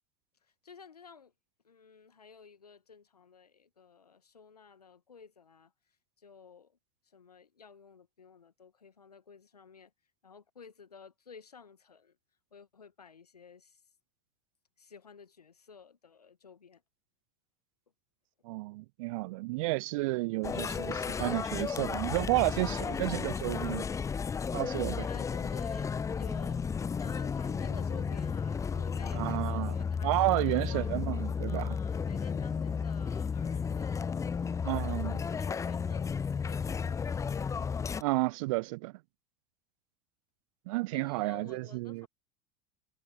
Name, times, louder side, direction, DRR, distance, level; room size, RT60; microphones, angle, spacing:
voice 1, 0.4-1.3 1.6-5.7 6.2-6.8 7.0-9.9 10.2-12.2 12.5-13.8 14.8-16.8 22.6-23.6 25.1-26.6 27.0-30.9 31.5-34.4 34.7-36.1 36.4-37.5 40.9-42.1, left 6 dB, 85° left, 1.5 m, -53 dB
voice 2, 18.4-23.9 24.5-25.1 29.1-29.7 30.0-31.8 34.6-35.2 38.0-38.9 40.7-42.1, right 22 dB, 60° right, 0.5 m, -31 dB
sound 1, 20.4-38.0, left 6 dB, 15° left, 0.5 m, -33 dB
figure-of-eight pair, 75°, 20 cm